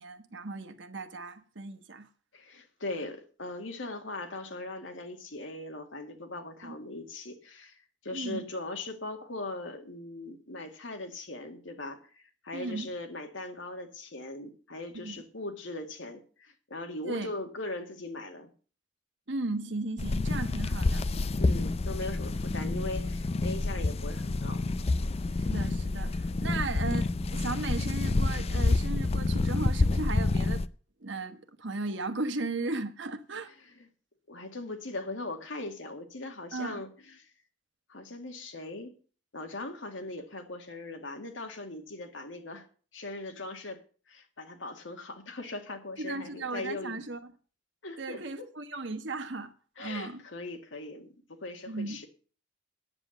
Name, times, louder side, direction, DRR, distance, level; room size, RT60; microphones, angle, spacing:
voice 1, 0.0-2.1 6.6-6.7 8.1-8.5 12.5-12.9 14.9-15.2 17.0-17.3 19.3-21.1 25.3-30.6 31.0-33.5 36.5-36.8 46.0-47.3 48.0-50.2 51.7-52.0, right 3 dB, 70° right, 1.3 m, -36 dB
voice 2, 2.3-18.5 21.4-24.6 26.4-26.7 33.6-33.9 34.3-37.3 37.9-39.0 39.3-42.7 42.9-43.8 44.1-47.0 47.8-48.5 49.8-52.1, left 2 dB, 80° left, 2.0 m, -40 dB
sound 1, 20.0-30.7, left 2 dB, 30° left, 0.5 m, -28 dB
9.8 x 7.6 x 7.7 m
head